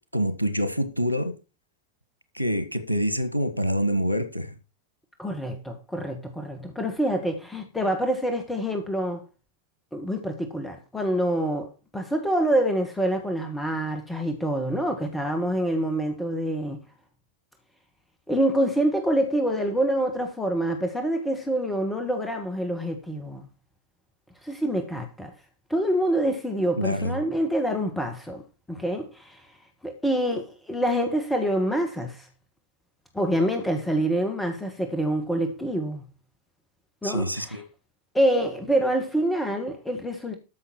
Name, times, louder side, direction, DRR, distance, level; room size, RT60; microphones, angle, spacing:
voice 1, 0.1-1.3 2.3-4.5 26.8-27.2 37.0-37.6, equal, 85° left, 1.5 m, -26 dB
voice 2, 5.2-9.2 9.9-16.8 18.3-23.5 24.4-25.3 25.7-28.4 28.7-29.5 29.8-32.3 33.1-36.0 37.0-37.6 38.1-40.3, right 1 dB, 5° left, 2.0 m, -26 dB
13.0 x 6.3 x 4.7 m
figure-of-eight pair, 90°, 0 cm